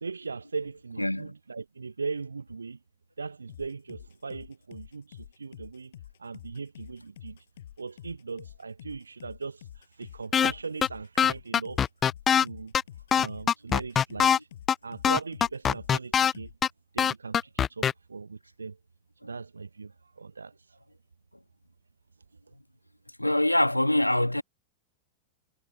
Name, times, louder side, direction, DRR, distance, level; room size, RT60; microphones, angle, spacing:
voice 1, 0.0-2.8 3.2-5.9 6.2-7.4 7.8-9.6 10.0-11.8 12.3-12.7 13.1-14.5 14.8-16.5 16.9-18.8 19.2-20.5, right 4 dB, 75° right, 1.1 m, -39 dB
voice 2, 1.0-1.3 23.2-24.4, left 1 dB, 85° left, 1.8 m, -24 dB
sound 1, 3.5-16.1 16.3-16.5, left 11 dB, 60° left, 6.2 m, -48 dB
sound 2, 10.3-10.5 10.8-10.9 11.2-12.4 12.7-12.8 13.1-14.4 14.7-14.8 15.0-16.3 16.6-16.7 17.0-17.9, left 8 dB, 25° left, 0.4 m, -22 dB
figure-of-eight pair, 90°, 0 cm